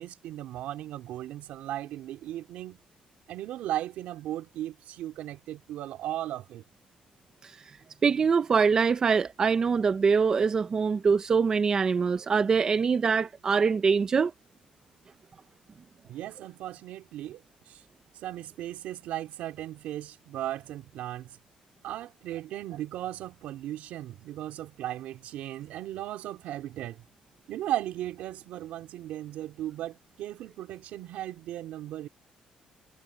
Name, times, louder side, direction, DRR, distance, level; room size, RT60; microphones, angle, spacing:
voice 1, 0.0-2.8 3.3-6.6 16.1-17.8 18.2-21.3 21.8-27.0 27.5-32.1, right 13 dB, 85° right, 4.5 m, -36 dB
voice 2, 8.0-14.3, right 5 dB, 30° right, 0.7 m, -24 dB
cardioid pair, 160°, 2 cm